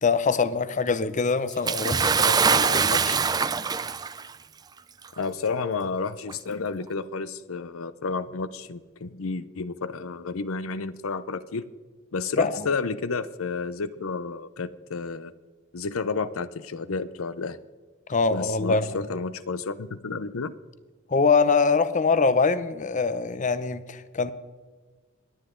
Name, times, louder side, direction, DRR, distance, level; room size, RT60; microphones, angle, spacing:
voice 1, 0.0-3.2 12.4-12.7 18.1-19.0 21.1-24.3, left 4 dB, 35° left, 0.6 m, -24 dB
Bathtub (filling or washing) / Splash splatter, 1.7-4.3 5.2-5.3 6.3-6.4, right 5 dB, 20° right, 0.4 m, -23 dB
voice 2, 5.2-11.7 12.1-15.3 15.7-17.6 18.3-20.5, left 4 dB, 75° left, 0.7 m, -31 dB
26.0 x 9.8 x 3.8 m
head